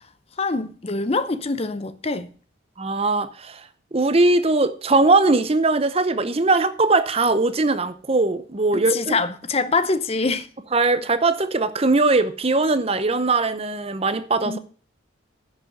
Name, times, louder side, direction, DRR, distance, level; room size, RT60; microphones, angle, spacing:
voice 1, 0.4-2.3 8.7-10.5 14.5-14.6, left 3 dB, 30° left, 0.6 m, -24 dB
voice 2, 2.8-3.6 3.9-9.1 10.7-14.6, right 3 dB, 30° right, 0.7 m, -20 dB
10.5 x 6.4 x 6.7 m
head